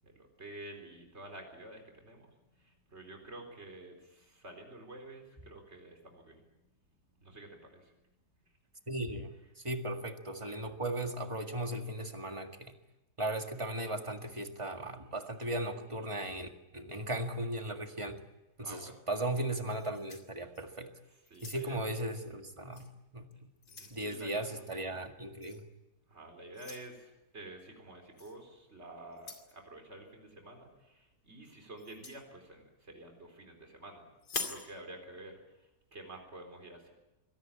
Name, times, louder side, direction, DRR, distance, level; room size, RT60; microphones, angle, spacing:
voice 1, 0.0-6.4 7.2-7.9 18.6-19.0 20.5-20.6 21.1-21.8 23.7-24.6 26.1-34.0 34.4-36.9, right 1 dB, 45° right, 3 dB, 4.5 m, -50 dB
voice 2, 8.9-9.4 9.6-12.8 13.2-18.2 18.6-20.9 21.4-22.9 23.1-23.3 23.9-25.7, right 1 dB, 20° right, 5 dB, 1.8 m, -37 dB
sound 1, 19.7-20.8 21.3-21.9 22.7-22.9 23.3-24.0 25.4-25.6 26.5-26.9 28.2-28.4 29.1-29.5 31.8-32.2 34.2-34.7, left 4 dB, 90° left, 3.2 m, -43 dB
24.0 x 18.0 x 8.7 m, 0.97 s
omnidirectional pair, 1.7 m